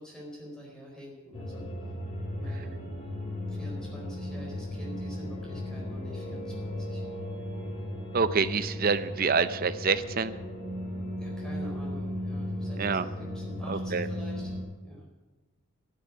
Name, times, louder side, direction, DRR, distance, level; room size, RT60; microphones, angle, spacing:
voice 1, 0.0-1.6 2.3-2.7 3.5-7.0 11.2-14.5 14.8-15.1, equal, 5° left, -3 dB, 4.3 m, -46 dB
sound 1, 1.3-14.6, left 1 dB, 30° left, 3.0 m, -36 dB
voice 2, 8.1-10.3 12.8-13.1 13.7-14.1, right 5 dB, 45° right, 13 dB, 0.6 m, -27 dB
12.0 x 10.5 x 8.3 m, 1.2 s
head